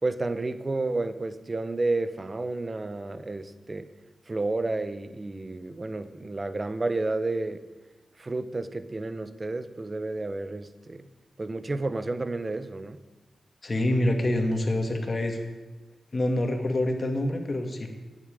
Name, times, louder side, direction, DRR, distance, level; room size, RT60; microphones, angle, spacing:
voice 1, 0.0-3.9 4.3-7.6 8.2-11.0 11.4-13.0, right 2 dB, 35° right, 12 dB, 1.0 m, -31 dB
voice 2, 13.6-15.4 16.1-17.9, left 1 dB, 40° left, 4 dB, 2.4 m, -26 dB
10.5 x 8.5 x 9.2 m, 1.2 s
cardioid pair, 55°, 0 cm